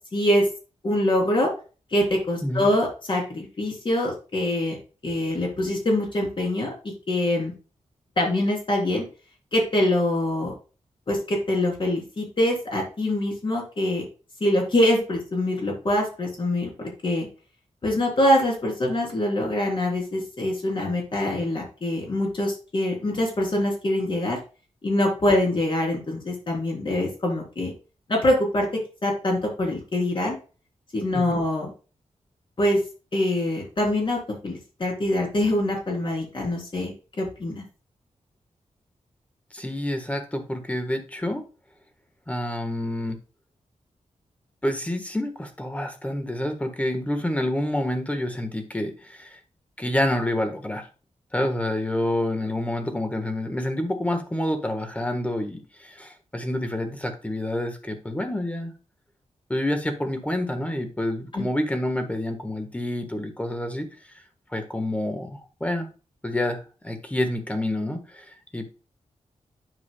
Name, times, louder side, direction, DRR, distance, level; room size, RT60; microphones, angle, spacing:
voice 1, 0.1-0.4 0.8-1.5 1.9-4.8 5.0-7.5 8.2-9.1 9.5-10.5 11.1-14.1 14.4-16.7 17.0-17.3 17.8-24.4 24.8-27.7 28.1-30.4 30.9-31.7 32.6-32.8 33.1-37.6 61.3-61.4, left 1 dB, 40° left, -1 dB, 3.5 m, -24 dB
voice 2, 39.5-41.4 42.3-43.2 44.6-49.4 49.8-50.9 51.3-58.7 59.5-63.9 64.5-65.9 66.2-68.2 68.5-68.6, left 1 dB, 10° left, 6 dB, 1.4 m, -28 dB
9.5 x 7.3 x 2.3 m, 0.34 s
wide cardioid pair, 145°, 13 cm